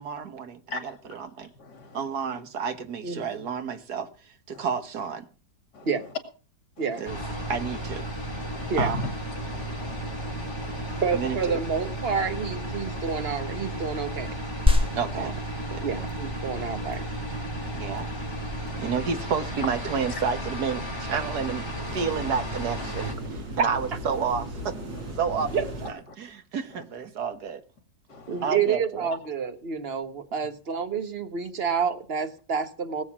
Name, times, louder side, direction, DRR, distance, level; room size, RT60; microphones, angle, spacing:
voice 1, 0.0-1.5 1.9-5.3 7.0-7.2 7.5-8.1 8.8-9.1 11.1-11.6 15.0-15.3 15.7-15.8 17.7-18.1 18.8-21.6 21.9-24.7 25.2-25.5 25.8-27.6 28.4-29.1, right 6 dB, 60° right, 1.9 m, -30 dB
voice 2, 0.7-1.2 1.6-2.0 4.5-4.7 5.7-6.1 6.8-7.1 8.4-9.0 9.3-11.0 14.8-15.3 17.6-18.0 18.7-19.1 20.1-20.2 22.1-22.2 24.9-25.0 26.1-26.2 26.7-26.8 28.1-28.6, left 3 dB, 65° left, 3.0 m, -40 dB
sound 1, 7.0-23.1, right 1 dB, 15° left, 4.4 m, -34 dB
voice 3, 11.0-14.3 15.1-15.3 15.8-17.0 25.5-25.6 28.3-33.0, right 6 dB, 35° right, 1.4 m, -29 dB
sound 2, 14.7-24.6, left 2 dB, 5° right, 2.7 m, -32 dB
sound 3, 17.1-25.9, right 1 dB, 80° right, 5.0 m, -41 dB
19.0 x 8.0 x 6.0 m
omnidirectional pair, 1.9 m